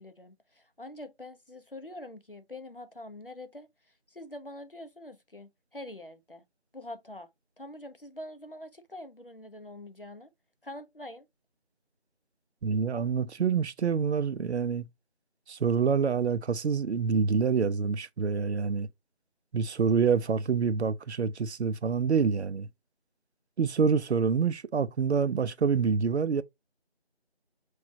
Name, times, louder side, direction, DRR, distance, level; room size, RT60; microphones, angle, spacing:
voice 1, 0.0-3.7 4.1-6.4 6.7-7.3 7.6-10.3 10.6-11.3, left 1 dB, 55° left, 0.7 m, -44 dB
voice 2, 12.6-14.9 15.5-18.9 19.5-22.7 23.6-26.4, right 5 dB, 90° right, 0.5 m, -27 dB
5.1 x 3.2 x 2.7 m
figure-of-eight pair, 180°, 32 cm